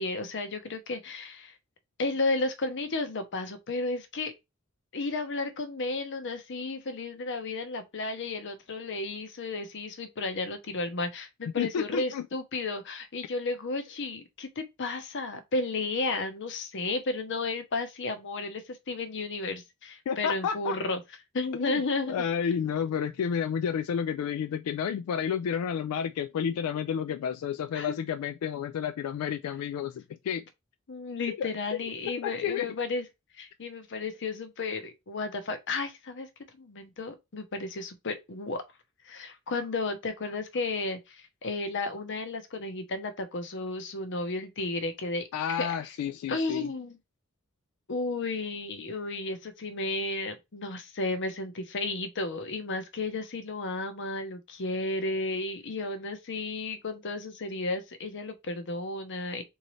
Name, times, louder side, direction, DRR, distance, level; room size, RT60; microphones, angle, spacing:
voice 1, 0.0-1.5 2.0-4.3 4.9-21.0 21.3-22.2 27.7-27.9 30.9-33.0 33.4-36.3 36.6-38.6 39.0-45.7 46.3-47.0 47.9-59.4, left 3 dB, 60° left, 0.7 m, -33 dB
voice 2, 11.6-12.3 20.1-20.8 21.6-21.8 22.1-30.4 31.3-31.5 32.2-32.7 45.3-46.7, left 7 dB, 85° left, 0.3 m, -31 dB
3.8 x 2.8 x 3.1 m
head